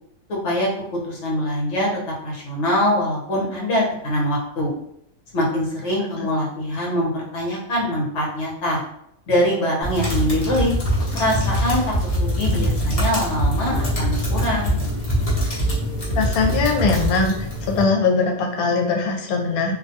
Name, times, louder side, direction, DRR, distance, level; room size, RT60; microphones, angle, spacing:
voice 1, 0.3-0.7 1.1-1.9 2.2-4.7 5.3-8.8 9.3-10.7 11.1-14.8, equal, 60° left, -3 dB, 1.1 m, -23 dB
sound 1, 9.8-17.8, equal, 35° left, 0.7 m, -23 dB
voice 2, 16.1-17.3 17.6-19.7, left 4 dB, 80° left, 1 dB, 1.1 m, -21 dB
2.6 x 2.2 x 2.6 m, 0.75 s
omnidirectional pair, 1.5 m